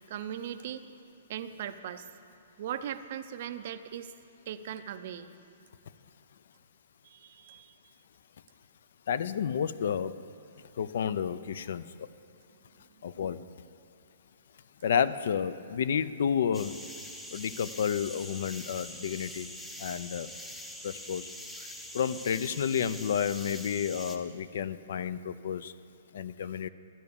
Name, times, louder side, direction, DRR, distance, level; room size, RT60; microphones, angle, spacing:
voice 1, 0.1-0.8 1.3-2.1 2.6-4.1 4.5-5.3 7.0-7.9, right 10 dB, 40° right, 11 dB, 0.5 m, -39 dB
voice 2, 9.1-10.1 10.8-12.1 13.0-13.4 14.8-16.7 17.3-19.5 19.8-20.3 20.8-21.3 21.9-25.7 26.1-26.7, left 8 dB, 55° left, 15 dB, 0.4 m, -30 dB
sound 1, 16.5-24.2, left 1 dB, 5° left, 0.6 m, -44 dB
12.5 x 9.5 x 7.0 m, 2.5 s
hypercardioid pair, 175°, 0 cm